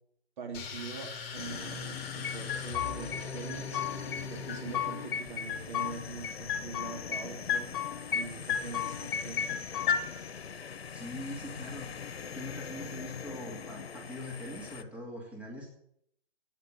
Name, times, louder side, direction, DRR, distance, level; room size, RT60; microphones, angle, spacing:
voice 1, 0.4-3.8 4.3-7.7 8.1-9.6, right 5 dB, 50° right, 2 dB, 3.4 m, -43 dB
sound 1, 0.5-5.3, left 5 dB, 30° left, 3.0 m, -41 dB
sound 2, 1.3-14.8, left 6 dB, 80° left, 1.0 m, -43 dB
sound 3, 2.2-3.2 3.5-4.2 4.5-5.9 6.2-7.2 7.5-8.2 8.5-10.0, left 8 dB, 55° left, 1.7 m, -32 dB
voice 2, 10.9-12.1 12.3-15.7, left 1 dB, 5° right, -2 dB, 2.4 m, -42 dB
12.0 x 9.5 x 8.0 m, 0.73 s
hypercardioid pair, 135°, 31 cm